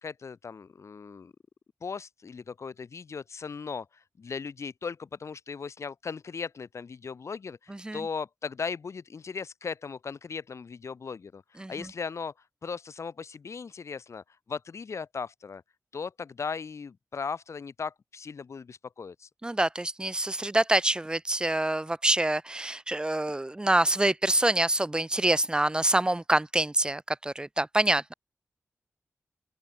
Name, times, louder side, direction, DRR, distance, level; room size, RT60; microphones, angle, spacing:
voice 1, 0.0-1.3 1.8-12.3 12.6-15.6 15.9-19.3, left 5 dB, 65° left, 2.3 m, -38 dB
voice 2, 7.7-8.0 11.6-11.7 19.4-28.1, right 1 dB, 15° right, 0.8 m, -26 dB
open air
wide cardioid pair, 95°, 5 cm